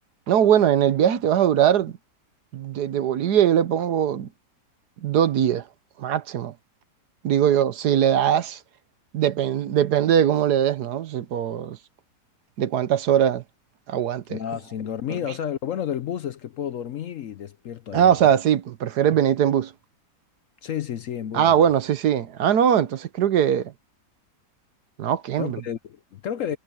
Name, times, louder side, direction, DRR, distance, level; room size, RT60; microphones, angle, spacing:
voice 1, 0.3-1.9 2.5-4.3 5.0-5.6 6.0-6.5 7.2-8.6 9.1-11.8 12.6-13.4 13.9-14.4 17.9-19.7 21.3-23.7 25.0-25.6, right 9 dB, 70° right, 1.5 m, -21 dB
voice 2, 14.3-18.3 20.6-21.6 25.4-26.6, left 9 dB, 60° left, 0.9 m, -31 dB
omnidirectional pair, 1.8 m